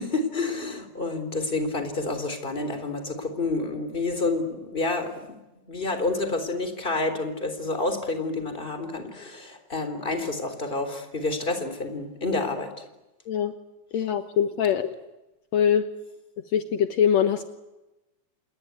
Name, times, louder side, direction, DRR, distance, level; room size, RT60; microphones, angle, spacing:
voice 1, 0.0-5.4 5.7-12.9, left 3 dB, 15° left, 8 dB, 3.7 m, -29 dB
voice 2, 13.9-15.0 15.5-15.8 16.5-17.4, left 8 dB, 65° left, 8 dB, 2.3 m, -23 dB
28.5 x 21.0 x 9.5 m, 1.0 s
omnidirectional pair, 3.4 m